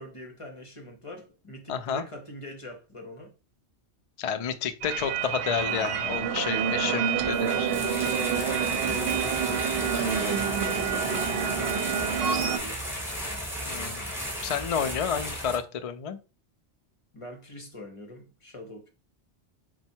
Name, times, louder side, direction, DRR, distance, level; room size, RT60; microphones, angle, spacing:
voice 1, 0.0-3.3 6.6-7.2 7.8-9.7 10.1-12.8 17.1-18.9, left 1 dB, 30° left, 0.9 m, -42 dB
voice 2, 1.7-2.0 4.2-7.9 13.7-14.0 14.4-16.2, left 7 dB, 50° left, 0.4 m, -30 dB
sound 1, 4.8-12.6, right 7 dB, 70° right, 0.8 m, -28 dB
sound 2, 7.2-15.6, equal, ahead, 1.3 m, -34 dB
4.2 x 2.2 x 4.4 m
omnidirectional pair, 1.1 m